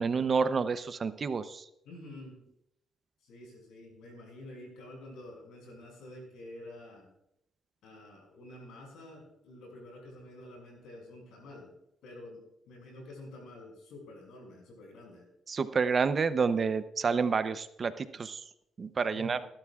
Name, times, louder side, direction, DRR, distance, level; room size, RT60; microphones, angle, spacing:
voice 1, 0.0-1.7 15.5-18.4 18.8-19.4, right 5 dB, 40° right, 12 dB, 0.7 m, -29 dB
voice 2, 1.8-2.4 3.2-7.1 7.8-11.7 12.0-15.3 19.1-19.5, left 1 dB, 85° left, 1 dB, 5.9 m, -49 dB
18.5 x 12.0 x 2.4 m, 0.78 s
cardioid pair, 90°, 0 cm